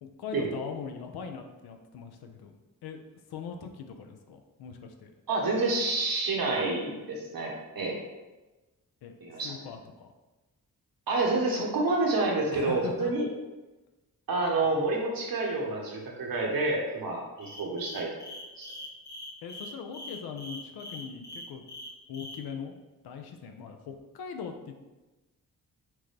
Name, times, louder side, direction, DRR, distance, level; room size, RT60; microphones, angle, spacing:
voice 1, 0.0-2.6 2.8-3.0 3.3-5.1 9.0-9.1 9.4-10.1 12.5-13.1 19.4-21.6 22.1-22.7 23.0-24.7, left 6 dB, 75° left, 5 dB, 0.6 m, -41 dB
voice 2, 5.3-8.0 9.2-9.5 11.1-13.3 14.3-18.1 18.6-18.7, right 2 dB, 65° right, -1 dB, 1.1 m, -28 dB
sound 1, 17.4-22.4, left 1 dB, 45° left, 1.0 m, -42 dB
6.1 x 2.2 x 3.2 m, 1.1 s
supercardioid pair, 45°, 38 cm